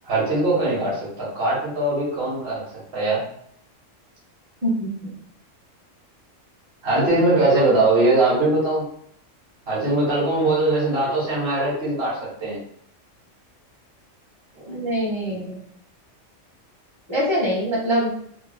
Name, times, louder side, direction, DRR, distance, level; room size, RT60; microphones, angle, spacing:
voice 1, 0.0-2.6 2.9-3.2 6.8-8.8 9.7-12.6 14.5-14.8, right 2 dB, 55° right, -8 dB, 1.6 m, -21 dB
voice 2, 4.6-5.1 14.7-15.6 17.1-18.1, equal, 20° right, -5 dB, 1.2 m, -24 dB
3.1 x 3.0 x 2.2 m, 0.68 s
omnidirectional pair, 1.3 m